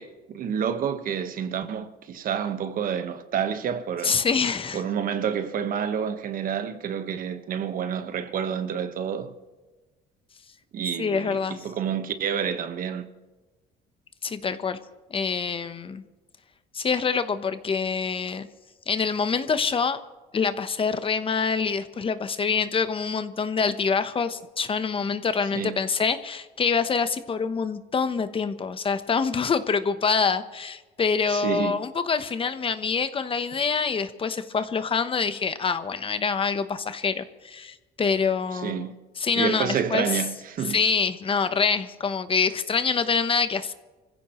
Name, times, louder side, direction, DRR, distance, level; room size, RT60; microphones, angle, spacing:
voice 1, 0.0-4.2 4.7-9.3 10.7-13.1 25.5-25.8 31.3-31.7 38.5-38.9 39.4-40.8, right 8 dB, 55° right, 1.3 m, -29 dB
voice 2, 4.0-4.8 11.0-11.6 14.2-14.8 15.1-16.0 16.7-18.5 18.9-20.0 20.3-38.8 39.2-40.2 40.7-43.7, left 5 dB, 30° left, 0.9 m, -26 dB
25.0 x 15.5 x 3.1 m
cardioid pair, 110°, 17 cm